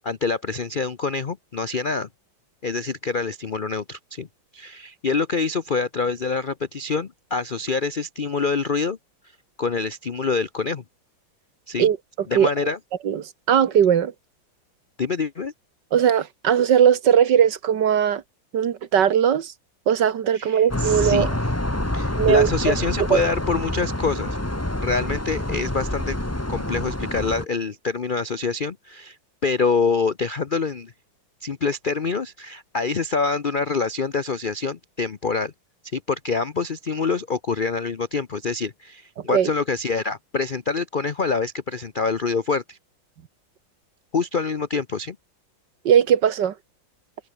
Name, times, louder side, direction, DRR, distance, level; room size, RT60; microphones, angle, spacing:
voice 1, 0.0-2.1 2.6-4.3 4.5-9.0 9.6-10.8 11.7-11.9 12.3-12.8 15.0-15.5 20.3-21.3 21.9-24.4 24.8-26.2 26.5-29.2 29.4-30.9 31.4-35.5 35.9-42.8 44.1-45.2, left 4 dB, 75° left, 0.4 m, -26 dB
voice 2, 13.0-14.1 15.9-18.2 18.5-19.5 19.9-21.3 22.2-22.7 23.1-23.2 39.3-39.5 45.9-46.5, right 9 dB, 60° right, 1.8 m, -19 dB
sound 1, 20.7-27.5, left 1 dB, 10° left, 1.7 m, -27 dB
omnidirectional pair, 2.2 m